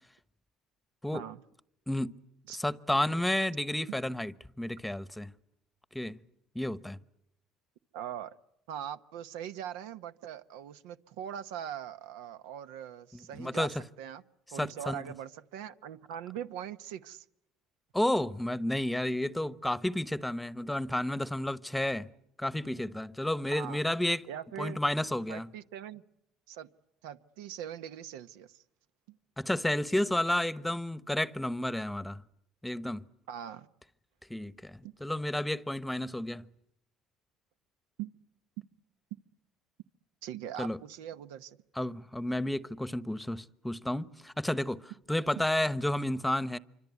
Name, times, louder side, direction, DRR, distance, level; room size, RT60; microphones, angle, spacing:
voice 1, 2.5-5.3 5.9-6.2 6.5-7.0 13.4-13.7 14.6-15.0 17.9-22.1 22.4-24.3 24.6-25.5 29.4-32.2 32.6-33.0 34.3-36.4 40.6-40.8 41.8-46.6, left 1 dB, 5° left, 1.0 m, -31 dB
voice 2, 7.9-8.4 8.7-14.2 14.5-17.2 23.5-23.8 24.3-24.8 25.3-26.0 26.5-26.7 27.0-28.6 33.3-33.7 34.8-34.9 38.0-38.1 40.2-41.6, right 10 dB, 90° right, 1.0 m, -41 dB
27.0 x 25.0 x 8.2 m
supercardioid pair, 90°, 0 cm